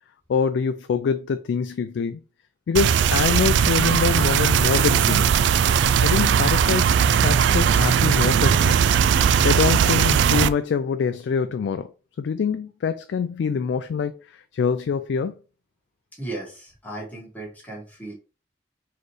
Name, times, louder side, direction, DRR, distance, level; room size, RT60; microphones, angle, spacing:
voice 1, 0.3-2.2 2.7-5.3 6.0-6.9 7.2-8.8 9.4-11.9 12.2-14.2 14.5-15.3, left 6 dB, 75° left, 0.3 m, -24 dB
sound 1, 2.7-10.5, right 7 dB, 85° right, 0.3 m, -19 dB
voice 2, 16.2-18.1, right 2 dB, 10° left, 1.6 m, -36 dB
4.3 x 3.1 x 3.1 m
head